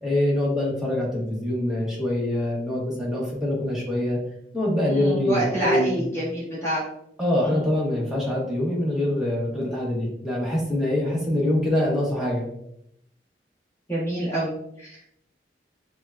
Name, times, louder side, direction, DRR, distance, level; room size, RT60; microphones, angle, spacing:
voice 1, 0.0-4.2 4.5-6.0 7.2-12.5, left 1 dB, 5° right, -5 dB, 0.9 m, -24 dB
voice 2, 4.9-6.8 7.4-7.6 13.9-15.2, right 1 dB, 15° left, -9 dB, 1.3 m, -27 dB
6.0 x 2.2 x 2.3 m, 0.75 s
head